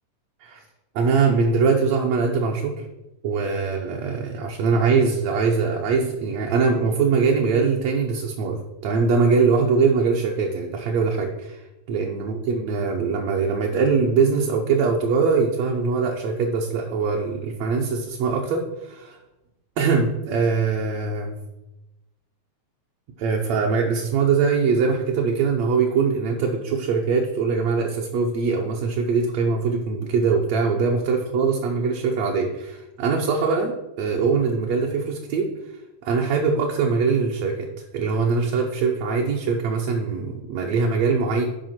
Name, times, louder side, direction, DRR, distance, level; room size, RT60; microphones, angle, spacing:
voice 1, 1.0-2.9 3.2-11.6 11.9-19.2 19.8-21.4 23.2-35.5 36.0-37.7 37.9-41.4, right 5 dB, 70° right, 0 dB, 1.7 m, -22 dB
7.8 x 4.8 x 5.7 m, 0.99 s
omnidirectional pair, 3.7 m